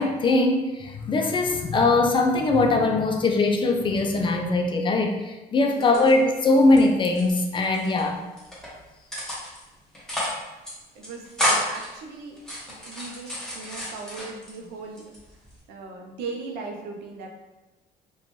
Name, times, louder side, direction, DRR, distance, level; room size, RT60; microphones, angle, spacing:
voice 1, 0.0-8.2, left 2 dB, 30° left, 3 dB, 0.3 m, -21 dB
voice 2, 5.7-6.1 10.9-12.4 12.7-15.1 15.7-17.3, right 4 dB, 80° right, 1 dB, 0.5 m, -38 dB
sound 1, 5.8-6.8 7.1-8.0 8.4-8.7 9.1-9.6 9.9-10.4 10.6-10.7 11.0-11.9 12.4-14.5 15.0-15.6, left 1 dB, 5° left, 0.9 m, -30 dB
2.5 x 2.2 x 3.0 m, 1.1 s
cardioid pair, 110°, 17 cm